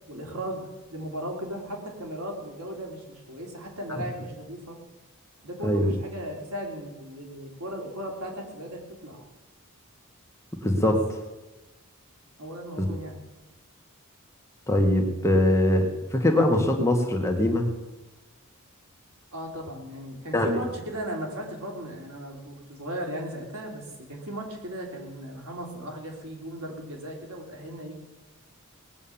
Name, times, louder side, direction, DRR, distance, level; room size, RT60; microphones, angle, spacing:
voice 1, 0.1-4.8 5.4-9.2 12.4-13.2 19.3-28.0, equal, 80° right, 0 dB, 3.4 m, -36 dB
voice 2, 10.6-11.0 12.8-12.9 14.7-17.7 20.3-20.5, left 1 dB, 15° left, 2 dB, 1.5 m, -22 dB
19.0 x 8.4 x 7.2 m, 1.1 s
head